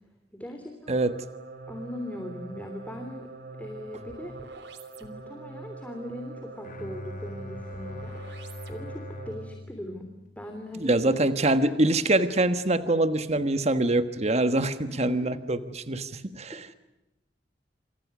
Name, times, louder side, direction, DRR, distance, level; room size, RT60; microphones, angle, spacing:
voice 1, 0.3-1.0 1.7-3.3 3.6-4.5 5.0-8.4 8.7-11.0 14.9-15.4 16.5-16.8, left 1 dB, 10° left, 4 dB, 3.2 m, -40 dB
sound 1, 0.8-9.6, right 3 dB, 75° right, 3.3 m, -43 dB
Bowed string instrument, 6.6-10.8, left 1 dB, 50° left, 2.5 m, -42 dB
voice 2, 10.8-16.6, right 2 dB, 40° right, 11 dB, 1.4 m, -24 dB
28.5 x 28.0 x 6.2 m, 0.97 s
head